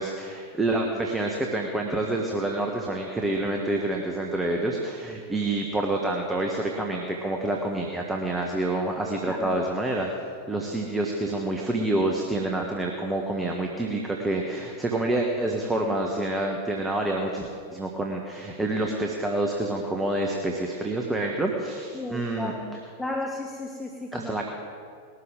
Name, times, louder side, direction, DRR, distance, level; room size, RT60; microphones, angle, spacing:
voice 1, 0.0-22.5 24.1-24.5, right 2 dB, 10° right, 1 dB, 1.3 m, -28 dB
voice 2, 9.3-9.6 21.9-24.5, left 2 dB, 5° left, 1 dB, 1.1 m, -34 dB
20.0 x 12.5 x 3.8 m, 2.3 s
figure-of-eight pair, 90°, 0 cm